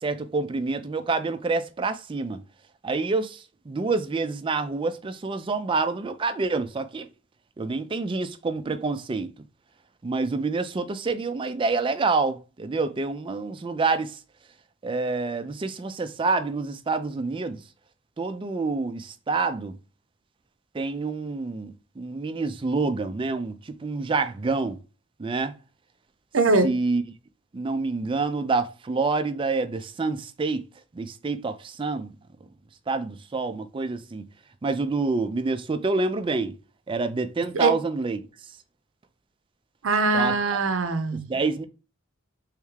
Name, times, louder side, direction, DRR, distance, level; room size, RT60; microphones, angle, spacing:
voice 1, 0.0-2.4 2.8-7.1 7.6-9.3 10.0-14.2 14.8-17.6 18.2-19.7 20.7-24.8 25.2-25.5 26.6-27.0 27.5-30.6 30.9-32.1 32.9-34.2 34.6-36.6 36.9-38.2 40.1-40.4 41.3-41.7, right 3 dB, 25° right, 0.3 m, -27 dB
voice 2, 26.3-26.7 37.5-37.8 39.8-41.3, right 3 dB, 70° right, 0.6 m, -22 dB
3.5 x 3.2 x 3.2 m
head